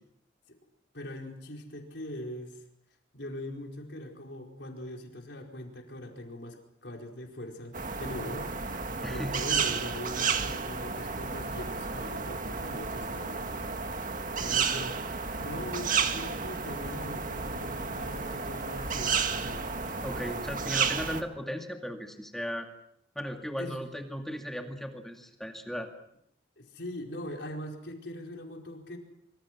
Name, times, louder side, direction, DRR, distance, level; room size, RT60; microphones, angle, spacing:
voice 1, 0.9-2.6 3.1-13.5 14.4-19.7 23.6-23.8 26.6-29.0, left 1 dB, 65° left, 1 dB, 4.9 m, -41 dB
sound 1, 7.7-21.2, right 5 dB, 45° right, 1.8 m, -32 dB
voice 2, 9.0-9.4 15.3-15.4 20.0-22.7 23.2-25.9, equal, ahead, 3 dB, 2.3 m, -36 dB
25.5 x 25.5 x 6.1 m, 0.74 s
head